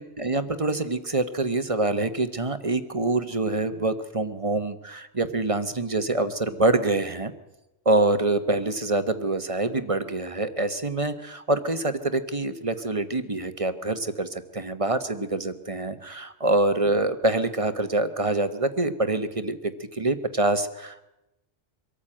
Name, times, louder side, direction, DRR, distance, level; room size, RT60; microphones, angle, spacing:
voice 1, 0.0-7.3 7.8-21.1, right 2 dB, 30° right, 10 dB, 1.1 m, -25 dB
24.0 x 13.5 x 8.8 m, 0.96 s
omnidirectional pair, 1.2 m